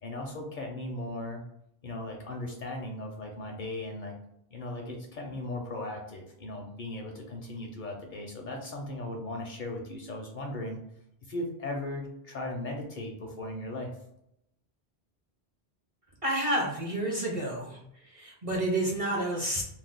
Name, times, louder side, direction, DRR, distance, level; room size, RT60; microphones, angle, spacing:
voice 1, 0.0-1.4 1.8-4.1 4.5-10.8 11.2-13.9, left 1 dB, 60° left, 1 dB, 0.6 m, -37 dB
voice 2, 16.2-17.8 18.1-19.6, right 1 dB, 40° right, -2 dB, 0.5 m, -29 dB
2.5 x 2.1 x 3.5 m, 0.76 s
omnidirectional pair, 1.1 m